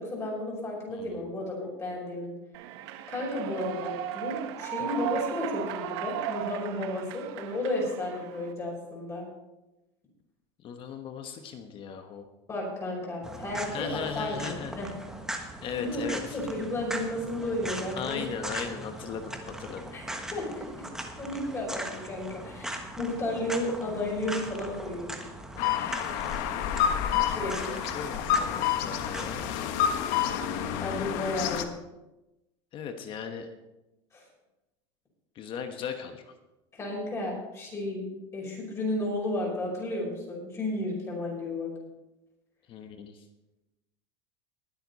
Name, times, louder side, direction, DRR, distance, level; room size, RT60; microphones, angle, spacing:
voice 1, 0.0-2.3 3.1-9.3 12.5-14.9 15.8-18.3 19.9-20.0 20.3-20.9 21.1-25.1 27.2-27.7 30.8-31.7 34.1-34.2 36.7-38.0 38.3-41.7, left 1 dB, 20° left, -3 dB, 5.6 m, -33 dB
Human voice / Clapping / Cheering, 2.5-8.5, right 11 dB, 70° right, 1.1 m, -36 dB
voice 2, 10.6-12.3 13.7-14.7 15.6-16.4 18.0-19.9 27.3-29.4 32.7-33.5 35.3-36.2 42.7-43.2, left 7 dB, 35° left, 6 dB, 1.2 m, -37 dB
sound 1, 13.2-29.5, right 1 dB, 5° right, 1.4 m, -40 dB
sound 2, 25.6-31.6, left 9 dB, 60° left, 1.2 m, -29 dB
21.0 x 7.9 x 4.2 m, 0.98 s
supercardioid pair, 140°, 14 cm